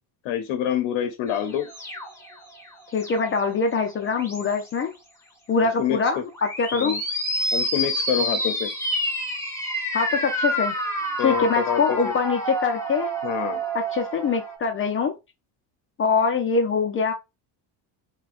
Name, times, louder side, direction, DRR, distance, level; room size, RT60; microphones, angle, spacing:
voice 1, 0.2-1.7 5.6-6.2 6.7-7.0 7.5-8.7 11.2-12.1 13.2-13.6, left 9 dB, 80° left, 0.7 m, -27 dB
sound 1, 1.3-3.5 4.0-4.7 6.3-14.6, equal, 5° left, 0.8 m, -28 dB
voice 2, 2.9-4.9 5.5-7.0 9.9-10.7 11.2-13.1 13.7-15.1 16.0-17.1, left 5 dB, 30° left, 0.4 m, -24 dB
4.2 x 2.2 x 2.4 m
cardioid pair, 135°, 48 cm